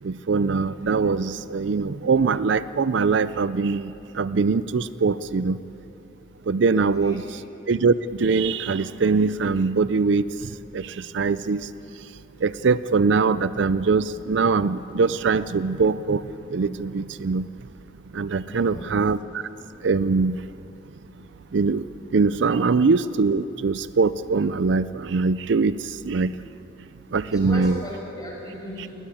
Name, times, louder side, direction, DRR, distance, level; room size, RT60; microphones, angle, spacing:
voice 1, 0.0-5.6 6.5-7.4 7.7-11.7 12.4-17.5 18.1-19.5 19.8-20.4 21.5-26.3 27.1-27.8, right 4 dB, 65° right, 15 dB, 0.5 m, -22 dB
voice 2, 6.6-7.2 18.3-19.0 22.5-22.8 27.3-29.0, equal, 20° left, -3 dB, 6.2 m, -37 dB
21.0 x 20.0 x 8.8 m, 3.0 s
head